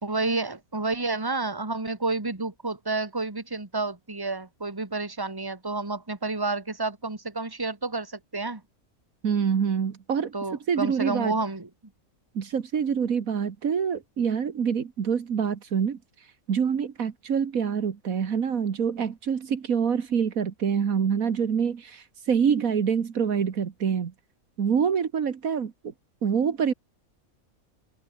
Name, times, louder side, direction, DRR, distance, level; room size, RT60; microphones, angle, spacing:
voice 1, 0.0-8.6 10.3-11.7, right 3 dB, 15° right, 2.0 m, -30 dB
voice 2, 9.2-10.3 10.7-11.4 12.4-16.0 16.5-24.1 24.6-25.9 26.2-26.7, right 7 dB, 70° right, 1.8 m, -26 dB
omnidirectional pair, 1.5 m